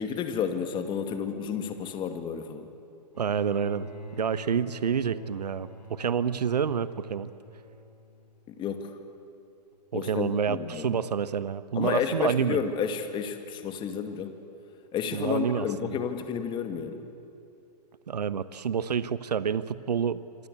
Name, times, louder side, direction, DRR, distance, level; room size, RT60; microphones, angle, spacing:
voice 1, 0.0-2.7 8.5-9.0 9.9-11.0 11.8-14.4 14.9-17.0, left 7 dB, 20° left, 7 dB, 2.4 m, -31 dB
Bowed string instrument, 3.1-8.6 9.7-9.8, left 1 dB, 90° left, 4.6 m, -46 dB
voice 2, 3.2-3.9 4.2-7.3 9.9-12.6 15.1-16.0 18.1-20.2, right 7 dB, 70° right, 15 dB, 1.1 m, -28 dB
26.5 x 26.5 x 8.3 m, 2.6 s
figure-of-eight pair, 120°, 21 cm